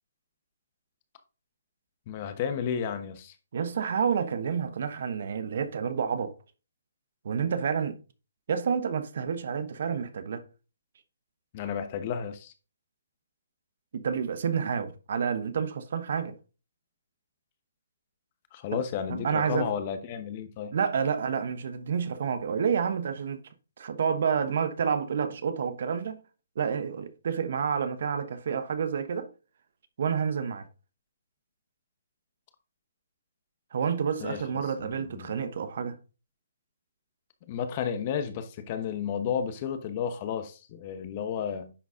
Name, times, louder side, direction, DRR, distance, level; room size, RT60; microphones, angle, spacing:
voice 1, 2.1-3.3 11.5-12.5 18.5-20.7 34.2-34.4 34.8-35.3 37.5-41.7, left 8 dB, 30° left, 1.0 m, -32 dB
voice 2, 3.5-6.3 7.2-8.0 8.5-10.4 13.9-16.4 18.7-18.8 19.1-19.7 20.7-23.4 23.8-26.2 26.6-29.3 30.0-30.7 33.7-36.0, right 7 dB, 55° right, 1.0 m, -29 dB
10.0 x 4.0 x 3.7 m
hypercardioid pair, 160°, 0 cm